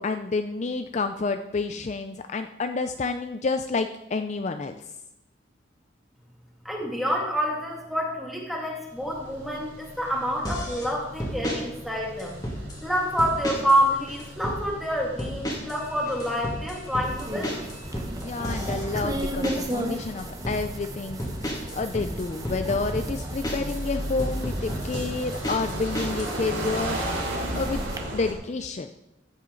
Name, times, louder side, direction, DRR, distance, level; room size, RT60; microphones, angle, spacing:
voice 1, 0.0-4.7 18.2-21.2 21.7-27.0 27.5-27.8 28.1-28.9, left 3 dB, 35° left, 8 dB, 0.4 m, -29 dB
voice 2, 6.6-12.4 12.8-17.9, equal, ahead, -2 dB, 2.3 m, -27 dB
sound 1, 8.9-28.3, right 1 dB, 70° right, 3.6 m, -37 dB
sound 2, 10.4-10.9 11.2-11.6 12.2-12.8 13.2-13.8 14.1-14.6 15.2-15.8 16.1-19.8 20.2-20.6 21.2-23.8 24.2-26.3, equal, 20° left, 2.2 m, -32 dB
sound 3, 17.0-28.0, right 1 dB, 20° right, 1.0 m, -36 dB
14.5 x 8.9 x 3.9 m, 0.90 s
head